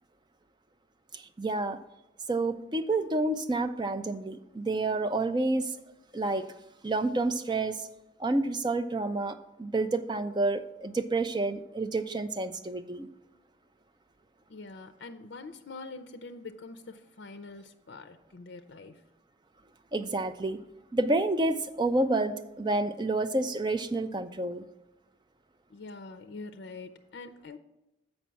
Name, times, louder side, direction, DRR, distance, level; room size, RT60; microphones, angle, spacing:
voice 1, 1.1-1.8 2.3-5.8 6.1-6.5 6.8-7.9 8.2-13.1 19.9-20.6 20.9-24.6, right 2 dB, 25° right, 8 dB, 0.4 m, -29 dB
voice 2, 14.5-19.0 25.7-27.6, left 3 dB, 70° left, 10 dB, 0.5 m, -44 dB
7.3 x 5.2 x 6.9 m, 0.96 s
head